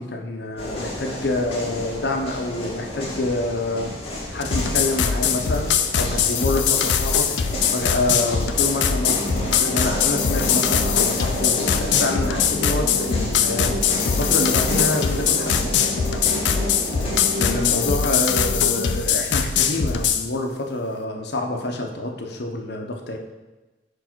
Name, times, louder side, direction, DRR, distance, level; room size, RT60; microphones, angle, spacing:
voice 1, 0.0-3.9 4.3-7.3 7.7-15.7 17.4-23.2, left 2 dB, 65° left, 2 dB, 0.9 m, -27 dB
sound 1, 0.6-17.8, left 1 dB, 35° left, 1.6 m, -31 dB
sound 2, 4.4-20.3, left 7 dB, 80° left, 0.5 m, -22 dB
sound 3, 9.1-19.1, left 1 dB, 85° right, 1.4 m, -33 dB
4.8 x 4.7 x 6.1 m, 1.1 s
head